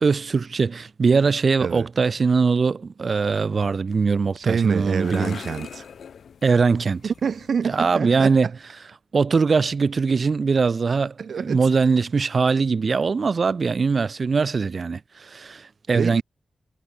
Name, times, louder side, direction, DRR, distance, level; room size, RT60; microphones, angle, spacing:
voice 1, 0.0-5.4 6.4-7.0 7.7-8.5 9.1-15.0 15.3-16.2, right 4 dB, 45° right, 0.3 m, -21 dB
sound 1, 4.0-7.6, left 7 dB, 85° left, 3.2 m, -41 dB
voice 2, 4.3-5.9 7.0-8.6 11.2-11.7 15.9-16.2, right 6 dB, 65° right, 1.6 m, -27 dB
wide cardioid pair, 165°, 0 cm